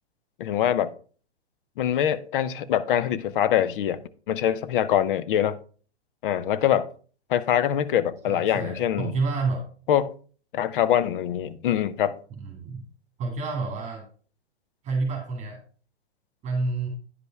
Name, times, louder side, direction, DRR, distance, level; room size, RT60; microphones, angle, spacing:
voice 1, 0.4-0.9 1.8-4.0 4.3-5.6 6.2-6.9 7.3-9.1 9.9-10.1 10.5-12.2, left 10 dB, 50° left, 0.7 m, -24 dB
voice 2, 8.3-9.7 12.3-12.8 13.2-14.0 14.8-15.6 16.4-16.9, right 3 dB, 20° right, 2.1 m, -29 dB
9.9 x 5.3 x 4.6 m
hypercardioid pair, 125°, 33 cm